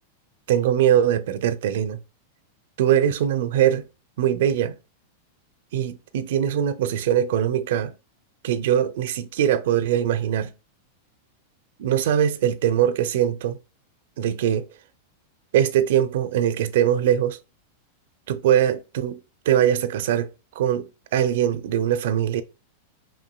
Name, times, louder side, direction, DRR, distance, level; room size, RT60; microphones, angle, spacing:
voice 1, 0.5-2.0 2.8-3.9 4.2-4.7 5.7-7.9 8.4-10.5 11.8-13.6 14.2-14.7 15.5-17.4 18.3-19.2 19.5-20.3 20.6-22.4, right 10 dB, 70° right, 0.5 m, -22 dB
5.5 x 2.6 x 2.2 m
hypercardioid pair, 105°, 0 cm